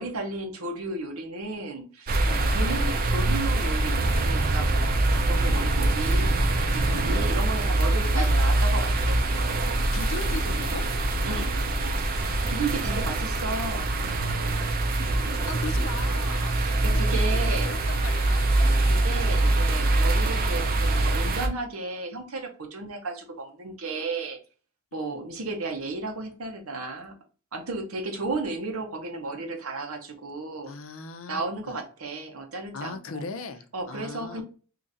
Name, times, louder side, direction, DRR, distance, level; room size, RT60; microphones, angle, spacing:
voice 1, 0.0-9.2 11.2-11.5 12.5-14.7 16.5-17.7 18.8-24.4 24.9-27.1 27.5-30.7 31.3-33.2 33.7-34.4, right 3 dB, 85° right, 4 dB, 0.9 m, -34 dB
sound 1, 2.1-21.5, right 2 dB, 45° right, 0.5 m, -24 dB
voice 2, 6.8-7.2 8.1-8.3 9.9-10.8 12.8-13.5 15.4-18.7 24.9-25.2 30.7-31.4 31.7-31.8 32.7-34.4, left 4 dB, 70° left, 8 dB, 0.5 m, -39 dB
2.9 x 2.5 x 3.9 m, 0.37 s
head